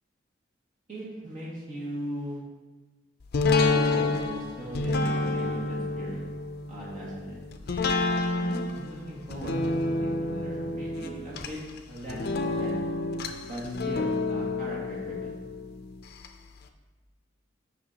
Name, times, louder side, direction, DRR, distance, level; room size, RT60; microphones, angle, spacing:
voice 1, 0.9-2.4 3.6-6.2 6.7-7.4 8.3-11.6 11.9-12.8 13.4-15.4, right 1 dB, 45° right, -6 dB, 2.0 m, -39 dB
sound 1, 3.3-16.3 16.7-16.8, left 3 dB, 55° left, 0.5 m, -29 dB
8.6 x 5.4 x 2.8 m, 1.2 s
head